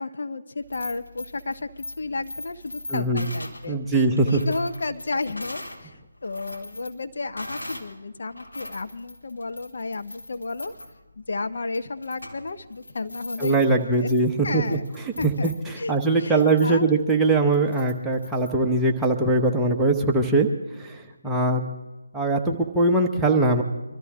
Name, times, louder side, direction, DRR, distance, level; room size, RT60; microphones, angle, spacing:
voice 1, 0.0-6.0 6.2-10.7 11.2-14.1 14.4-14.8 15.2-15.5 15.8-15.9 16.2-16.9 21.2-21.7, left 3 dB, 60° left, 8 dB, 1.0 m, -32 dB
sound 1, 0.6-5.8 6.2-7.9 8.3-18.5, left 1 dB, 80° left, 3.1 m, -41 dB
voice 2, 2.9-3.3 3.7-4.4 13.4-14.8 15.2-20.5 20.8-21.6 22.1-23.6, right 2 dB, 5° right, -1 dB, 1.1 m, -21 dB
24.5 x 13.5 x 3.6 m, 1.1 s
figure-of-eight pair, 155°, 0 cm